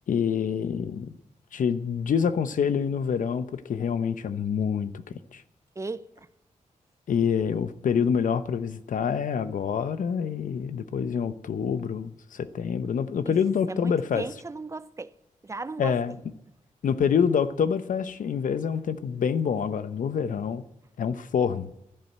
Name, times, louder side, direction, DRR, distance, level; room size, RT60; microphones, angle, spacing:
voice 1, 0.1-1.2 1.5-5.4 7.1-14.2 15.8-16.2 16.8-20.6 21.0-21.7, left 7 dB, 80° left, 0.9 m, -26 dB
voice 2, 5.8-6.3 13.3-13.4 13.7-15.1 15.4-16.0, right 3 dB, 20° right, 0.6 m, -36 dB
13.0 x 11.0 x 8.0 m
cardioid pair, 80°, 13 cm